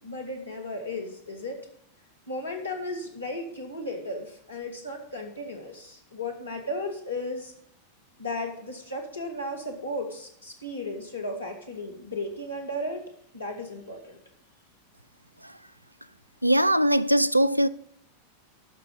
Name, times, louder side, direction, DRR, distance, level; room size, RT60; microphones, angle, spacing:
voice 1, 0.0-1.6 2.3-7.5 8.2-13.0 13.3-14.2, left 1 dB, 80° left, 2.1 m, -35 dB
voice 2, 16.4-17.7, right 1 dB, 85° right, 0.4 m, -21 dB
12.0 x 6.2 x 5.3 m
figure-of-eight pair, 90°, 0 cm